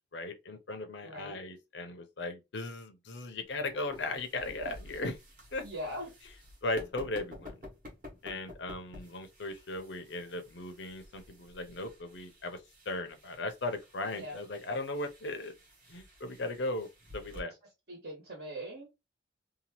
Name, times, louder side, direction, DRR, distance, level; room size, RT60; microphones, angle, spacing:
voice 1, 0.1-5.1 5.5-5.6 6.6-7.5 8.2-12.6 12.9-15.5 15.9-16.9 17.1-17.5, left 2 dB, 65° left, 0.6 m, -37 dB
voice 2, 1.0-1.4 3.5-3.8 4.6-4.7 5.6-6.1 14.1-14.4 17.3-17.4 17.9-18.9, equal, 60° right, 1.2 m, -41 dB
sound 1, 3.5-17.4, left 2 dB, 45° right, 1.2 m, -52 dB
2.8 x 2.3 x 2.9 m
head